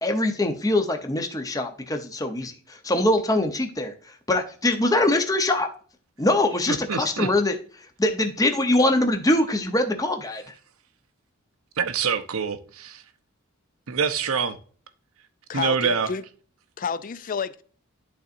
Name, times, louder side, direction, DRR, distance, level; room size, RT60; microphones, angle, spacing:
voice 1, 0.0-3.9 4.3-5.7 6.2-7.6 8.0-10.5, left 1 dB, 15° left, 0.7 m, -23 dB
voice 2, 6.9-7.3 11.8-13.0 13.9-14.5 15.5-16.1, right 6 dB, 75° right, 0.8 m, -25 dB
voice 3, 15.5-16.2 16.8-17.6, left 6 dB, 40° left, 0.4 m, -30 dB
12.0 x 4.0 x 2.6 m
head